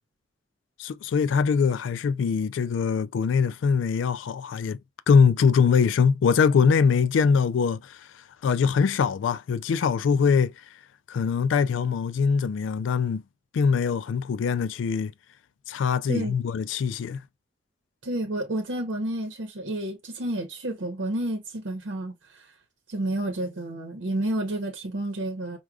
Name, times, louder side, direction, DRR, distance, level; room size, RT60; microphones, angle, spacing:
voice 1, 0.8-4.8 5.1-8.0 8.4-10.5 11.1-13.2 13.5-15.1 15.7-17.2, left 6 dB, 90° left, 0.3 m, -22 dB
voice 2, 18.0-22.5 22.9-25.6, right 1 dB, 85° right, 0.8 m, -30 dB
4.8 x 2.2 x 2.3 m
head